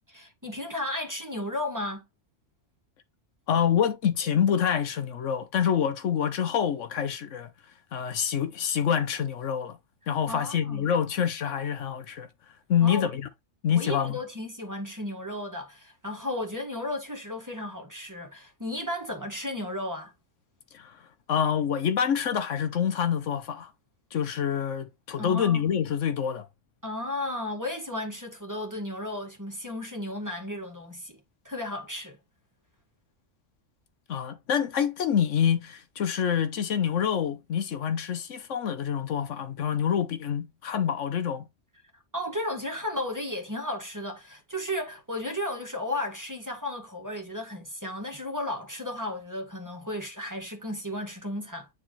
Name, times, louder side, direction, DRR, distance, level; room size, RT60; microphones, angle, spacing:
voice 1, 0.1-2.0 10.3-10.9 12.8-13.1 13.7-20.1 25.2-25.6 26.8-31.2 31.4-32.2 42.1-51.7, left 1 dB, 15° right, 1.7 m, -34 dB
voice 2, 3.5-9.8 10.1-13.3 13.6-14.2 20.7-23.7 24.1-26.5 34.1-41.5, left 8 dB, 75° left, 1.2 m, -27 dB
9.5 x 3.6 x 3.1 m
omnidirectional pair, 1.3 m